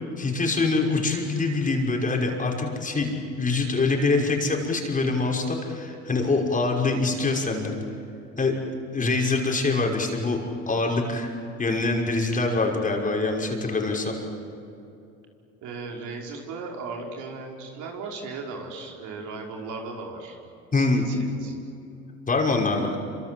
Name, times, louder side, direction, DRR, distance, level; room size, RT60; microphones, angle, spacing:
voice 1, 0.2-7.7 8.4-8.6 8.9-10.4 10.7-11.3 11.6-14.2 20.7-21.0 22.3-23.0, left 3 dB, 25° left, 1 dB, 5.7 m, -24 dB
voice 2, 15.6-20.4 20.7-21.6, right 4 dB, 60° right, 1 dB, 5.3 m, -37 dB
27.5 x 26.0 x 7.9 m, 2.8 s
supercardioid pair, 90°, 34 cm